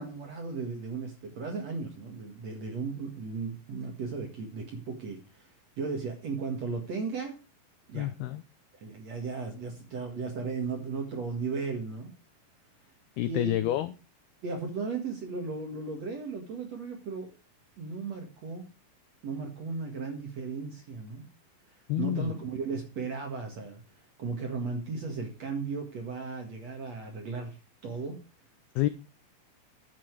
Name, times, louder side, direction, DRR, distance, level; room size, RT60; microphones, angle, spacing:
voice 1, 0.0-5.5 5.8-7.4 7.9-8.1 8.8-12.1 13.2-13.5 14.4-17.3 17.8-18.6 19.2-21.3 22.0-23.8 24.2-27.6 27.8-28.2, right 4 dB, 50° right, 3 dB, 2.2 m, -35 dB
voice 2, 7.9-8.4 13.2-13.9 21.9-22.3 28.8-28.9, left 14 dB, 85° left, 12 dB, 2.2 m, -28 dB
11.0 x 9.0 x 4.7 m, 0.31 s
omnidirectional pair, 5.4 m